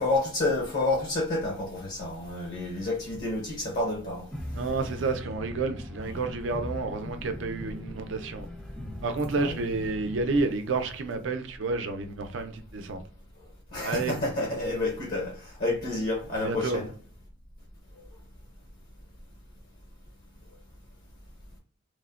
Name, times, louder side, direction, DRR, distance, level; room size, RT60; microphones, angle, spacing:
voice 1, 0.0-4.3 6.0-6.2 9.3-9.6 13.7-16.9, left 2 dB, 50° left, 0.7 m, -29 dB
sound 1, 4.3-10.4, left 1 dB, 5° left, 0.4 m, -39 dB
voice 2, 4.6-8.5 9.0-13.0 13.8-14.2 16.4-16.8, right 3 dB, 70° right, 0.4 m, -30 dB
3.1 x 2.1 x 2.3 m
head